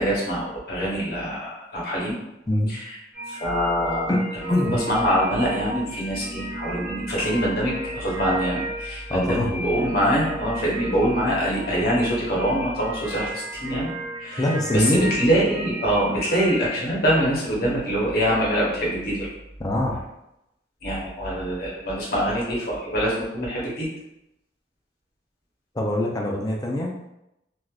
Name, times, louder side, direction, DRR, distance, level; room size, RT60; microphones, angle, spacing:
voice 1, 0.0-2.2 2.7-3.0 3.3-4.1 4.4-13.9 14.2-19.3 20.8-23.9, equal, 55° left, -5 dB, 1.1 m, -24 dB
sound 1, 3.1-16.8, right 1 dB, 50° right, 0.8 m, -35 dB
voice 2, 9.1-9.5 14.4-15.1 19.6-20.0 25.7-26.9, left 1 dB, 20° left, -1 dB, 0.5 m, -23 dB
3.3 x 2.5 x 2.3 m, 0.86 s
head